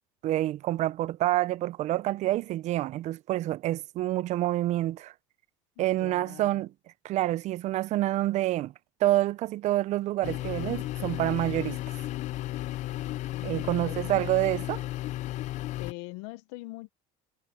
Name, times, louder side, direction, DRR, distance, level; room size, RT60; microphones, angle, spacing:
voice 1, 0.2-5.1 5.8-6.7 7.0-8.7 9.0-11.8 13.4-14.8, right 15 dB, 50° right, 0.6 m, -27 dB
voice 2, 5.8-6.6 13.2-14.0 15.8-16.9, left 23 dB, 80° left, 0.8 m, -43 dB
sound 1, 10.2-15.9, left 15 dB, 50° left, 0.6 m, -34 dB
supercardioid pair, 115°, 15 cm